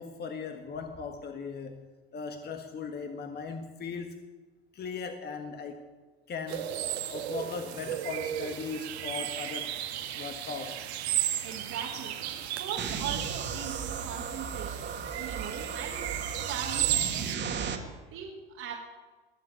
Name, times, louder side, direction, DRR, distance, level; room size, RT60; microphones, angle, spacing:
voice 1, 0.0-4.2 4.7-5.9 6.3-6.8 7.1-9.8 10.1-10.8, left 5 dB, 30° left, 6 dB, 1.5 m, -38 dB
sound 1, 6.5-17.3, right 11 dB, 75° right, 1.7 m, -34 dB
voice 2, 11.2-12.1 12.6-16.1 16.4-17.3 18.1-18.7, right 7 dB, 50° right, -3 dB, 2.8 m, -40 dB
sound 2, 12.8-17.8, right 6 dB, 35° right, 2.4 m, -35 dB
21.0 x 7.6 x 8.2 m, 1.3 s
hypercardioid pair, 85°, 33 cm